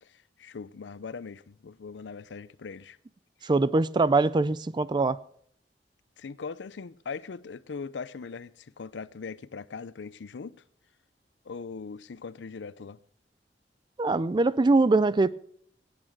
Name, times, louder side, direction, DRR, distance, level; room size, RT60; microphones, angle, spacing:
voice 1, 0.0-3.0 3.4-3.5 6.2-10.6 11.5-13.0, left 5 dB, 85° left, 0.5 m, -40 dB
voice 2, 3.4-5.2 14.0-15.3, right 3 dB, 25° right, 0.4 m, -23 dB
17.5 x 8.8 x 4.6 m
head